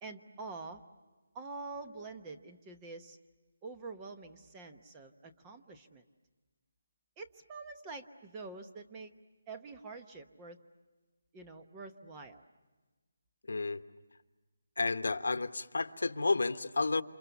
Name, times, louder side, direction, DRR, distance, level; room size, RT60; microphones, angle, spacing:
voice 1, 0.0-0.8 1.3-3.2 3.6-6.0 7.2-9.1 9.5-10.6 11.3-12.4, right 3 dB, 15° right, 7 dB, 0.9 m, -46 dB
voice 2, 13.5-13.8 14.8-17.0, left 3 dB, 75° left, 10 dB, 1.2 m, -31 dB
29.0 x 27.5 x 7.0 m, 1.2 s
hypercardioid pair, 175°, 0 cm